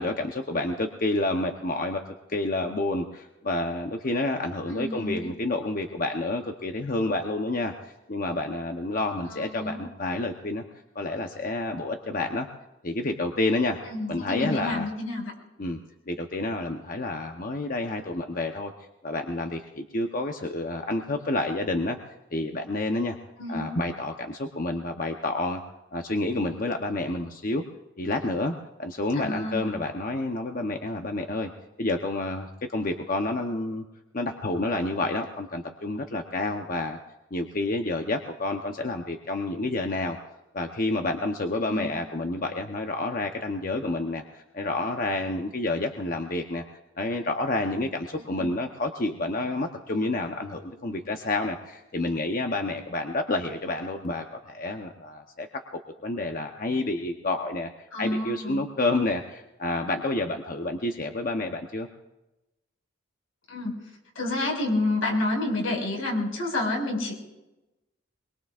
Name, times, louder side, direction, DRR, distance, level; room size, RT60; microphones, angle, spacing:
voice 1, 0.0-2.0 2.3-10.6 10.9-12.5 12.8-13.8 14.1-14.9 15.6-15.8 16.1-18.7 19.0-22.0 22.3-23.2 23.5-25.6 25.9-27.6 28.0-31.5 31.8-33.8 34.1-37.0 37.3-40.2 40.5-46.6 47.0-55.5 56.0-61.9, left 2 dB, 45° left, 4 dB, 0.8 m, -29 dB
voice 2, 4.7-5.3 9.3-9.8 13.9-15.3 23.4-23.7 29.2-29.8 41.6-41.9 48.2-48.5 57.9-58.6 63.5-63.7 64.2-67.1, left 2 dB, 85° left, 0 dB, 5.4 m, -29 dB
23.0 x 22.0 x 2.4 m, 0.98 s
head